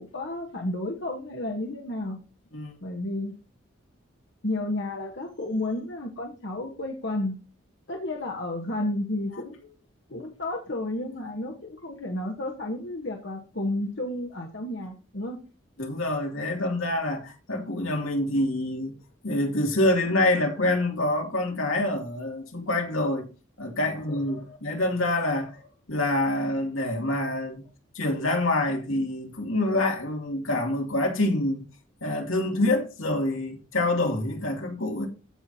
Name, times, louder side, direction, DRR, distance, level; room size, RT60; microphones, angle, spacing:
voice 1, 0.0-2.2 2.8-3.3 4.4-7.3 7.9-9.8 10.1-15.4 23.9-24.6, left 1 dB, 60° left, 1.2 m, -32 dB
voice 2, 15.8-19.0 19.2-23.2 23.6-25.5 25.9-27.6 27.9-31.6 32.0-35.1, left 1 dB, 85° left, 2.6 m, -26 dB
15.5 x 5.8 x 2.8 m
head